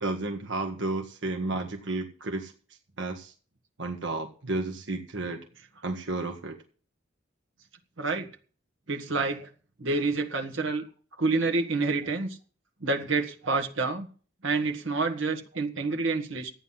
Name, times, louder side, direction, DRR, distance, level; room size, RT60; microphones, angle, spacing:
voice 1, 0.0-2.5 3.0-3.3 3.8-5.4 5.8-6.6, right 2 dB, 70° right, 2 dB, 1.4 m, -32 dB
voice 2, 8.0-8.3 8.9-9.5 9.8-10.8 11.2-12.4 12.8-14.1 14.4-16.5, right 3 dB, 90° right, 3 dB, 1.8 m, -28 dB
13.5 x 9.3 x 5.8 m, 0.41 s
head